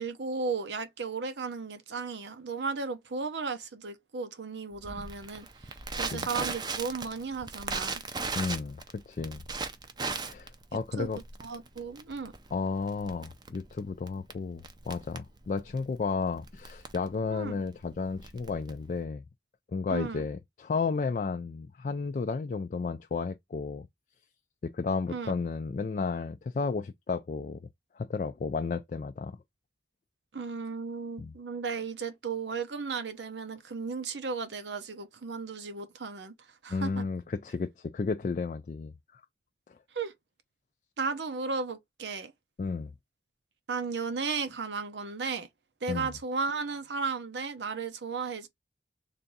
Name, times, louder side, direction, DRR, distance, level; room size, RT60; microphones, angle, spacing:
voice 1, 0.0-8.0 11.0-11.1 11.4-12.3 17.3-17.6 19.9-20.3 25.1-25.4 30.3-36.3 36.6-37.0 39.9-40.1 41.0-42.3 43.7-45.5 45.8-48.5, right 4 dB, 85° right, 0.7 m, -35 dB
Crackle, 4.8-19.0, right 4 dB, 25° right, 0.5 m, -38 dB
voice 2, 8.3-9.4 10.2-11.2 12.5-19.2 19.7-23.9 24.6-27.6 28.0-29.4 31.2-31.3 36.7-38.9 42.6-42.9 45.9-46.1, left 4 dB, 45° left, 0.3 m, -33 dB
3.4 x 2.6 x 3.9 m
head